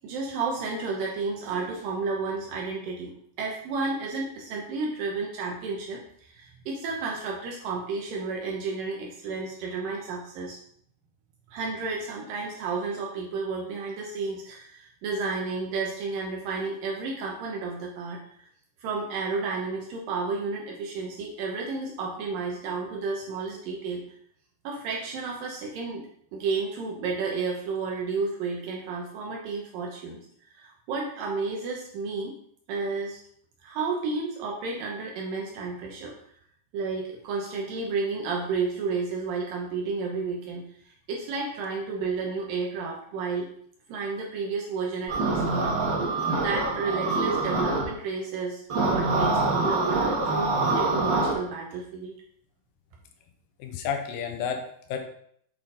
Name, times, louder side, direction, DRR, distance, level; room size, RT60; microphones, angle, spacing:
voice 1, 0.0-10.6 11.5-18.4 18.8-24.0 24.6-30.2 30.5-32.4 32.7-33.2 33.6-36.2 36.7-43.5 43.9-45.7 46.4-52.2, right 4 dB, 80° right, -1 dB, 2.6 m, -32 dB
sound 1, 45.1-47.8 48.7-51.3, right 3 dB, 50° right, 1.4 m, -25 dB
voice 2, 53.6-55.0, left 7 dB, 85° left, 4 dB, 2.7 m, -31 dB
8.2 x 4.4 x 3.8 m, 0.65 s
omnidirectional pair, 4.1 m